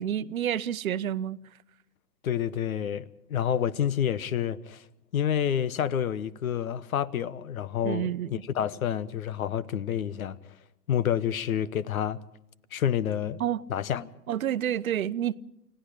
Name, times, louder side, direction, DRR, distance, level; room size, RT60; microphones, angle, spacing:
voice 1, 0.0-1.4 7.8-8.3 13.4-13.6 14.3-15.3, right 10 dB, 55° right, 0.9 m, -29 dB
voice 2, 2.2-4.8 5.1-10.4 10.9-12.2 12.7-13.4 13.7-14.1, left 9 dB, 55° left, 1.1 m, -28 dB
30.0 x 17.5 x 5.0 m
figure-of-eight pair, 120°, 49 cm